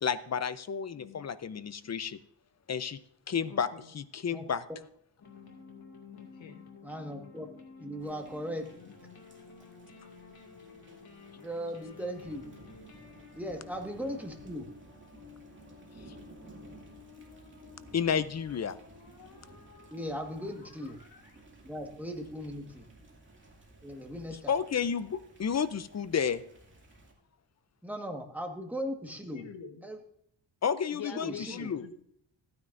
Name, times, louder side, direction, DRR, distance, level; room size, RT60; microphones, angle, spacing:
voice 1, 0.0-2.2 2.7-3.0 3.3-3.7 3.9-4.6 17.9-18.8 24.5-26.4 30.6-31.8, left 7 dB, 40° left, 14 dB, 0.6 m, -31 dB
voice 2, 0.9-1.3 3.5-3.9 6.1-6.6 10.0-10.1 29.3-29.9 30.9-31.9, left 7 dB, 85° left, 6 dB, 1.4 m, -46 dB
sound 1, 5.2-22.9, left 5 dB, 55° left, 2.3 m, -53 dB
voice 3, 6.8-7.5 7.8-8.7 11.4-12.4 13.4-14.7 19.9-21.0 21.6-22.9 23.8-24.5 27.8-29.5 29.8-30.0 31.1-31.7, equal, 5° right, 3 dB, 1.5 m, -38 dB
Thunder / Rain, 8.0-27.1, right 2 dB, 25° right, 2.3 m, -56 dB
14.5 x 9.4 x 2.6 m, 0.71 s
wide cardioid pair, 110°, 44 cm